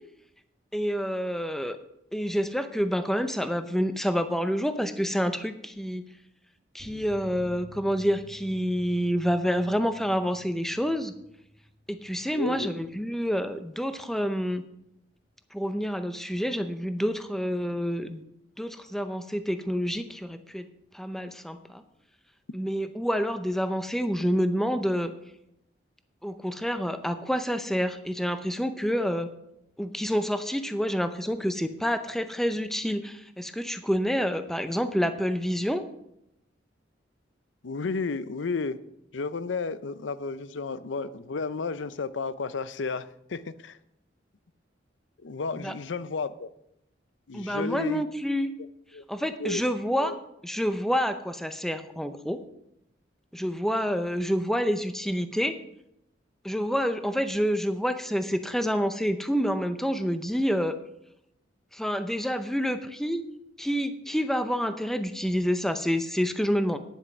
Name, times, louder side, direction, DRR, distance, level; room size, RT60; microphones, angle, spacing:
voice 1, 0.7-1.8 2.1-6.1 6.7-11.1 11.9-14.6 15.5-18.2 18.6-20.7 20.9-21.8 22.5-25.1 26.2-29.3 29.8-35.8 45.6-45.7 47.3-48.5 49.1-50.1 50.4-52.4 53.3-55.5 56.4-60.8 61.7-63.2 63.6-66.8, equal, ahead, 9 dB, 0.6 m, -28 dB
sound 1, 6.8-13.9 14.2-14.3 14.6-14.7, equal, 75° right, 1.6 m, -51 dB
voice 2, 12.3-12.8 37.6-38.8 39.1-43.8 45.2-46.5 47.3-48.0 48.9-49.0 49.4-49.6 50.0-50.1, left 4 dB, 85° left, 15 dB, 0.6 m, -32 dB
9.9 x 7.8 x 6.1 m, 0.81 s
head